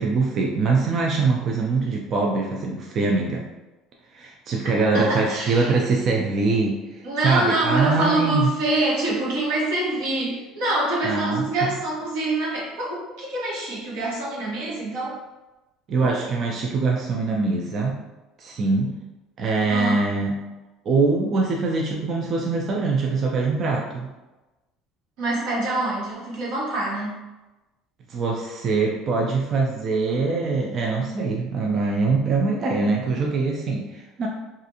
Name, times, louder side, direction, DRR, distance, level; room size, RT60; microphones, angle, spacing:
voice 1, 0.0-3.5 4.1-8.5 11.0-11.4 15.9-18.0 18.4-18.9 19.4-20.3 20.9-24.1 28.1-34.3, right 3 dB, 40° right, 0 dB, 0.3 m, -23 dB
voice 2, 4.9-5.7 7.0-15.2 19.7-20.1 25.2-27.2, right 2 dB, 85° right, -6 dB, 1.2 m, -25 dB
2.5 x 2.4 x 2.7 m, 1.1 s
cardioid pair, 140°, 0 cm